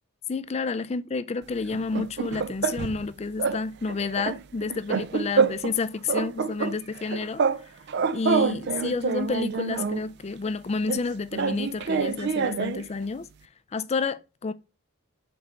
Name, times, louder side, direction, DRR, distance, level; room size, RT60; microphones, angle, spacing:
voice 1, 0.3-7.4 8.1-13.3 13.7-14.5, left 4 dB, 30° left, 0.4 m, -30 dB
sound 1, 1.7-3.1 3.4-3.6 3.9-5.8 6.1-7.6 7.9-10.1 10.9-12.9, right 5 dB, 50° right, 0.4 m, -27 dB
5.2 x 4.5 x 5.0 m
head